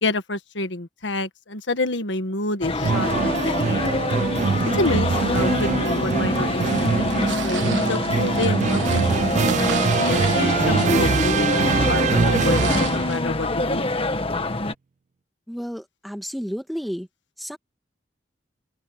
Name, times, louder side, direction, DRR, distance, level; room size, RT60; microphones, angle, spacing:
voice 1, 0.0-3.9 4.7-9.1 9.8-13.9, left 2 dB, 80° left, 1.5 m, -28 dB
sound 1, 2.6-14.7, left 2 dB, 30° left, 1.5 m, -24 dB
sound 2, 2.8-13.2, right 5 dB, 40° right, 0.3 m, -23 dB
sound 3, 6.6-13.2, right 7 dB, 90° right, 1.2 m, -36 dB
voice 2, 15.5-17.1 17.4-17.6, equal, ahead, 2.3 m, -31 dB
open air
head